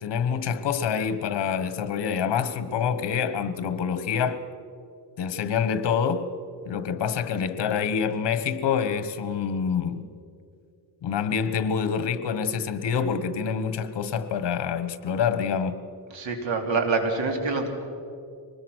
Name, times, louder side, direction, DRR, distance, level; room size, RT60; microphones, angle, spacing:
voice 1, 0.0-4.4 5.2-6.3 6.6-10.1 11.0-15.8, left 7 dB, 65° left, 1.4 m, -26 dB
voice 2, 16.1-17.7, right 4 dB, 70° right, 3.3 m, -26 dB
24.0 x 20.0 x 6.4 m
cardioid pair, 145°, 46 cm